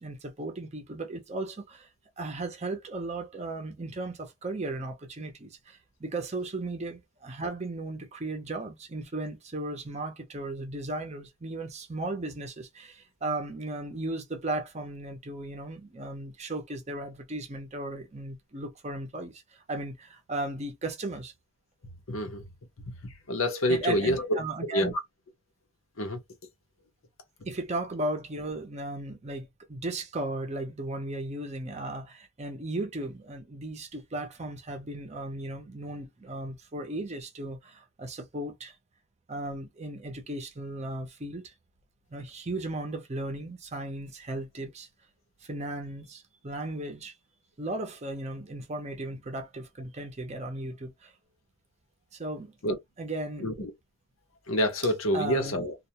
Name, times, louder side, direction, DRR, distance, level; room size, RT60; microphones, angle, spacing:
voice 1, 0.0-1.9 2.2-21.3 23.7-24.9 27.5-38.8 39.3-41.5 42.1-44.9 45.4-47.1 47.6-51.1 52.1-52.5 53.0-53.7 55.1-55.7, right 2 dB, 30° right, 0.5 m, -36 dB
voice 2, 22.1-22.4 23.3-24.9 26.0-26.2 52.6-52.8 53.4-53.7 54.5-55.7, equal, 75° left, 0.7 m, -27 dB
2.3 x 2.2 x 2.7 m
head